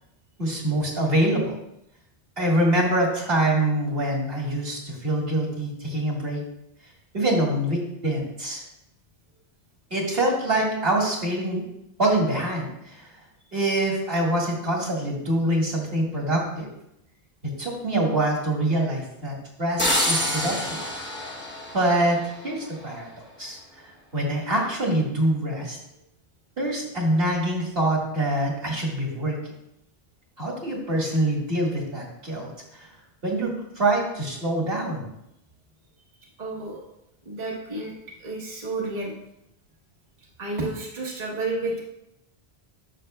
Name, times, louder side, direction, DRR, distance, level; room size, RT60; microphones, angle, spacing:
voice 1, 0.4-1.5 2.4-6.4 7.1-8.6 9.9-11.6 12.0-13.1 13.5-16.7 17.6-20.8 21.7-23.1 23.4-23.6 24.1-25.8 26.6-29.4 30.4-32.9 33.2-35.1, right 1 dB, 65° right, -2 dB, 2.0 m, -25 dB
sound 1, 19.8-22.6, left 1 dB, 10° left, 0.9 m, -27 dB
voice 2, 36.4-36.8 37.3-37.9 38.2-39.1 40.4-41.8, right 2 dB, 45° right, -3 dB, 1.1 m, -30 dB
10.0 x 6.5 x 2.2 m, 0.82 s
omnidirectional pair, 1.1 m